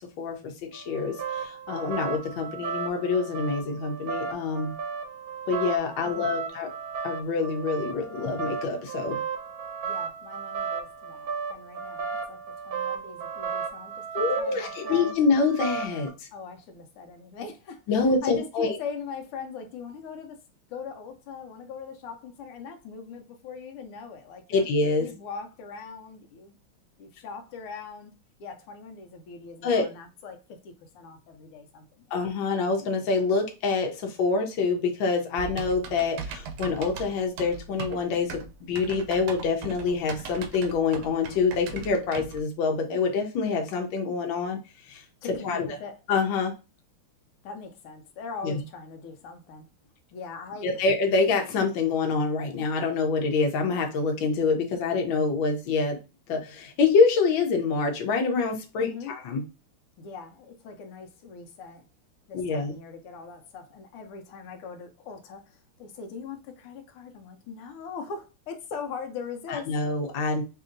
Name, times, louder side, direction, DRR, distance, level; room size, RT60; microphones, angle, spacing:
voice 1, 0.2-4.7 5.5-6.7 7.0-9.2 14.1-16.3 17.9-18.7 24.5-25.1 29.6-29.9 32.1-44.6 44.9-45.0 45.4-45.7 46.1-46.5 48.4-48.5 50.6-56.0 56.3-59.4 62.3-62.7 69.5-70.4, left 4 dB, 65° left, 1.5 m, -26 dB
sound 1, 0.7-16.1, right 6 dB, 60° right, 1.1 m, -34 dB
voice 2, 6.0-6.6 9.8-12.4 12.6-14.1 14.4-15.2 16.3-20.4 20.7-24.7 25.0-26.6 27.0-28.1 28.4-32.2 45.2-46.0 47.4-49.7 50.1-50.8 58.8-59.1 60.0-61.8 62.3-69.7, left 5 dB, 90° left, 1.6 m, -41 dB
Typing, 35.4-42.4, right 5 dB, 80° right, 1.5 m, -39 dB
5.1 x 2.8 x 2.5 m
omnidirectional pair, 2.4 m